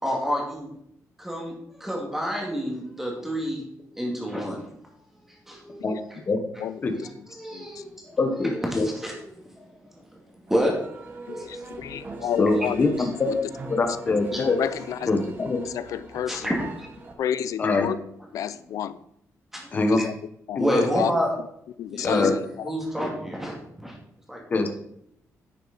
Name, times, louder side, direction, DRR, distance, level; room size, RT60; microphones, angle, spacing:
voice 1, 0.0-0.7 1.2-4.7 5.3-5.8 7.4-8.2 8.5-10.0 10.5-10.7 11.3-12.2 14.3-14.4 16.3-16.9 19.5-19.7 20.0-20.1 20.6-21.3 21.9-22.3 22.6-23.9 24.3-24.4, equal, 5° right, -1 dB, 2.1 m, -29 dB
voice 2, 6.6-7.3 7.5-7.8 11.3-13.0 13.3-13.5 14.3-15.3 15.6-16.5 17.2-18.0 18.3-19.0 19.9-20.2 20.5-20.6 20.9-21.2 21.8-22.7, left 9 dB, 75° left, 15 dB, 0.5 m, -31 dB
voice 3, 8.2-8.9 12.4-12.9 13.2-13.3 13.7-14.6 15.1-15.6 17.6-17.9 19.7-20.0 20.6-20.8 22.0-22.3 24.5-24.7, left 3 dB, 30° left, 5 dB, 1.0 m, -23 dB
sound 1, 10.5-17.1, right 3 dB, 35° right, 1.2 m, -42 dB
10.5 x 6.4 x 4.1 m, 0.74 s
wide cardioid pair, 180°, 6 cm